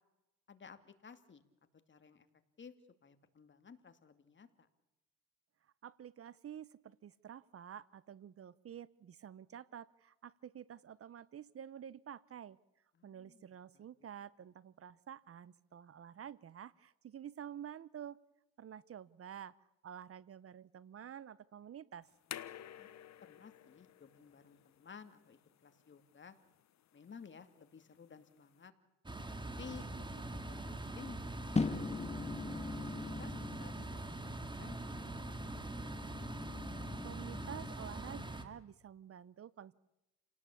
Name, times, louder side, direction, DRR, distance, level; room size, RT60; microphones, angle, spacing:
voice 1, 0.5-1.4 1.9-2.3 2.6-2.7 3.0-4.7 12.9-13.4 22.8-22.9 23.2-26.4 26.9-28.7 29.4-31.8 32.6-35.6, left 6 dB, 40° left, 9 dB, 2.5 m, -55 dB
voice 2, 5.8-12.6 13.0-18.2 18.6-19.5 19.8-22.1 37.0-39.7, right 9 dB, 50° right, 20 dB, 0.9 m, -50 dB
sound 1, 22.0-28.7, left 11 dB, 65° left, 1.3 m, -53 dB
sound 2, 29.1-38.5, right 2 dB, 15° right, 2.7 m, -43 dB
sound 3, 31.5-37.8, left 3 dB, 20° left, 1.9 m, -41 dB
29.5 x 18.0 x 8.5 m, 0.96 s
cardioid pair, 90°, 30 cm